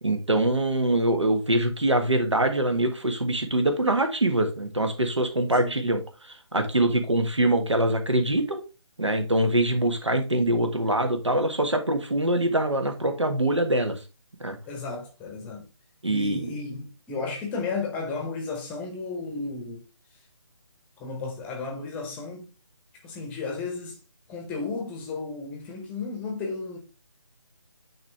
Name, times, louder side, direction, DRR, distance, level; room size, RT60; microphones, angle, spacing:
voice 1, 0.0-8.6 9.0-14.0 14.4-14.6 16.0-16.5, right 1 dB, 85° right, 1.5 m, -24 dB
voice 2, 5.5-5.8 14.7-15.7 16.0-19.8 21.0-22.5 23.0-24.0 24.3-26.8, left 4 dB, 10° left, 0.8 m, -33 dB
9.5 x 3.2 x 3.3 m
figure-of-eight pair, 150°, 15 cm